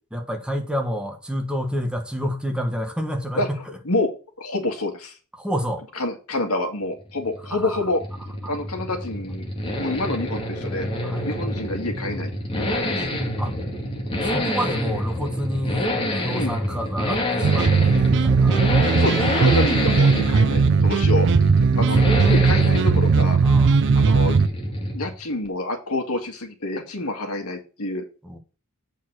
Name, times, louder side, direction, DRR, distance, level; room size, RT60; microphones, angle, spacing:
voice 1, 0.1-3.8 5.4-5.9 7.5-7.9 8.4-8.5 11.0-11.3 13.4-13.6 14.2-18.6 21.7-22.2 23.4-23.8 28.2-28.4, equal, 5° right, 1.2 m, -29 dB
voice 2, 4.4-5.2 6.0-8.0 8.5-9.5 9.8-12.3 12.6-13.1 16.3-16.5 19.0-21.3 21.8-23.4 23.9-24.5 24.9-28.0, left 2 dB, 70° left, 2.1 m, -27 dB
Accelerating revving vroom, 7.0-25.2 25.5-25.6, left 1 dB, 25° left, 1.9 m, -27 dB
sound 1, 17.4-24.5, right 4 dB, 55° right, 0.4 m, -18 dB
8.4 x 4.6 x 6.1 m
head